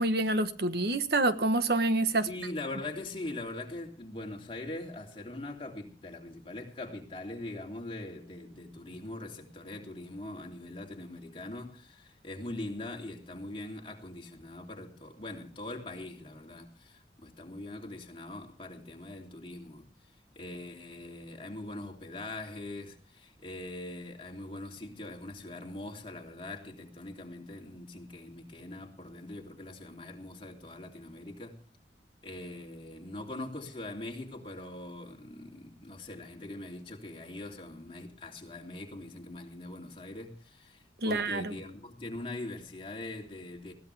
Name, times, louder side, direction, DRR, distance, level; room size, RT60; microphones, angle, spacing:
voice 1, 0.0-2.3 41.0-41.5, right 2 dB, 65° right, 1.3 m, -27 dB
voice 2, 2.2-19.8 20.3-31.6 32.2-43.7, left 2 dB, 30° left, 3.0 m, -42 dB
21.0 x 16.5 x 3.4 m
head